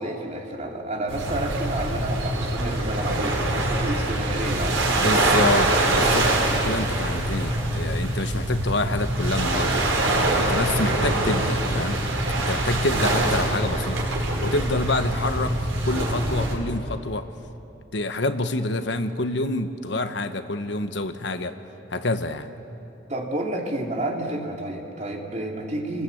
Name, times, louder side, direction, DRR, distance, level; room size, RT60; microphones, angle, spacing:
voice 1, 0.0-5.0 23.1-26.0, right 1 dB, 35° right, 0 dB, 3.0 m, -30 dB
sound 1, 1.1-16.5, right 1 dB, 80° right, 5.0 m, -24 dB
voice 2, 5.0-9.8 10.3-12.0 12.4-14.0 14.4-17.3 17.9-21.6 21.9-22.5, left 2 dB, 60° left, 9 dB, 1.1 m, -27 dB
30.0 x 21.0 x 8.4 m, 3.0 s
head